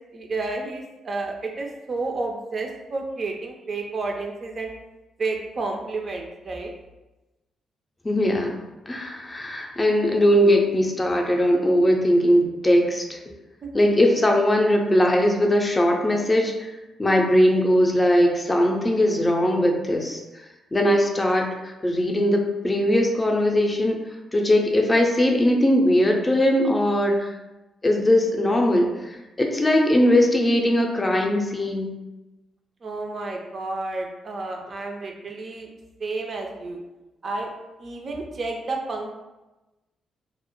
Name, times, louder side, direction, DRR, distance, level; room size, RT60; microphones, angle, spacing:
voice 1, 0.1-4.7 5.2-6.7 13.6-13.8 32.8-35.7 36.0-36.8 37.2-37.5 37.8-39.1, right 3 dB, 45° right, 2 dB, 0.4 m, -31 dB
voice 2, 8.0-8.6 8.9-13.2 13.7-16.7 17.0-20.2 20.7-24.0 24.3-27.3 27.8-31.9, left 1 dB, 25° left, 1 dB, 0.5 m, -20 dB
2.1 x 2.0 x 2.9 m, 1.0 s
hypercardioid pair, 40°, 0 cm